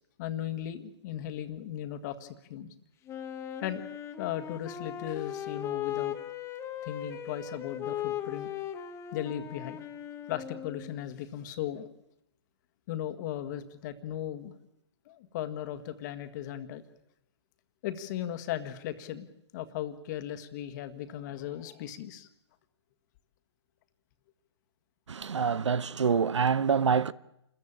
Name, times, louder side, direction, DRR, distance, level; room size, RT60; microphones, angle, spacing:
voice 1, 0.2-2.7 3.6-3.8 4.2-6.2 6.8-8.5 9.1-9.8 10.3-11.9 12.9-14.6 15.1-16.8 17.8-22.3, left 11 dB, 40° left, 1.8 m, -37 dB
Wind instrument woodwind instrument, 3.1-11.1, left 10 dB, 15° left, 1.3 m, -38 dB
voice 2, 25.1-27.1, right 6 dB, 75° right, 0.8 m, -26 dB
28.0 x 14.0 x 8.9 m
figure-of-eight pair, 130°, 15 cm